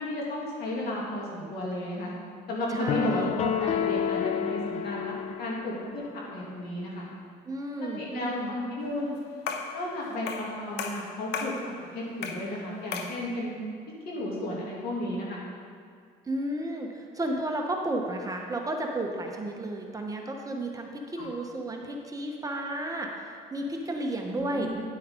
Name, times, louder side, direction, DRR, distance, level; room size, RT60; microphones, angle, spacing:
voice 1, 0.0-2.1 2.5-7.1 8.0-9.1 9.7-13.5 14.0-15.4 21.2-21.3 24.3-24.8, left 1 dB, 65° left, -4 dB, 2.7 m, -33 dB
voice 2, 2.7-3.4 7.4-8.6 16.2-24.7, right 1 dB, 20° right, 1 dB, 1.0 m, -33 dB
sound 1, 2.9-6.1, left 9 dB, 40° left, 0.4 m, -30 dB
sound 2, 9.5-9.8 10.3-10.5 10.8-11.6 12.2-12.5 12.9-13.2, left 6 dB, 85° left, 0.9 m, -34 dB
10.0 x 8.5 x 3.8 m, 2.2 s
cardioid pair, 110°, 17 cm